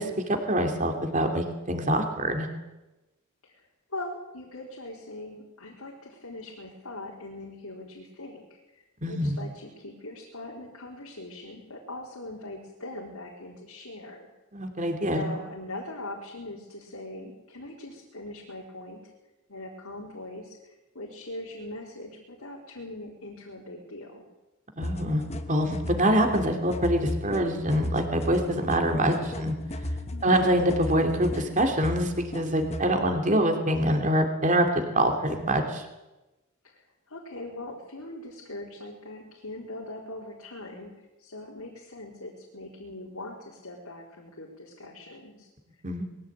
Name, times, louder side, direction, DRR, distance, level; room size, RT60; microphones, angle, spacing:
voice 1, 0.0-2.5 9.0-9.4 14.5-15.2 24.8-25.2 25.5-29.5 30.2-35.8 45.8-46.1, right 1 dB, 35° right, 4 dB, 2.9 m, -25 dB
voice 2, 3.4-14.3 15.1-19.0 19.5-24.3 30.1-30.5 36.6-40.9 41.2-45.5, left 1 dB, 85° left, -3 dB, 4.1 m, -41 dB
sound 1, 24.8-32.9, left 1 dB, 30° left, 1.2 m, -36 dB
21.5 x 15.5 x 8.7 m, 1.0 s
head